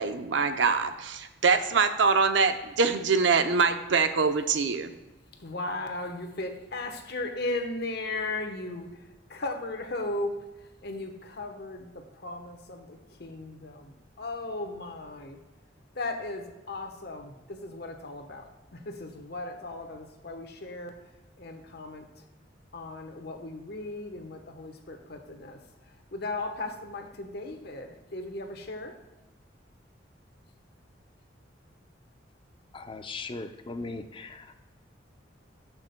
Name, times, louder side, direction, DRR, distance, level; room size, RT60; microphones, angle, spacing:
voice 1, 0.0-4.9, right 5 dB, 75° right, 9 dB, 0.6 m, -24 dB
voice 2, 5.3-15.4 15.9-22.2 22.7-28.9, left 2 dB, 60° left, 5 dB, 1.0 m, -37 dB
voice 3, 32.7-34.6, left 3 dB, 30° left, 8 dB, 0.5 m, -38 dB
13.5 x 6.0 x 2.2 m, 1.1 s
head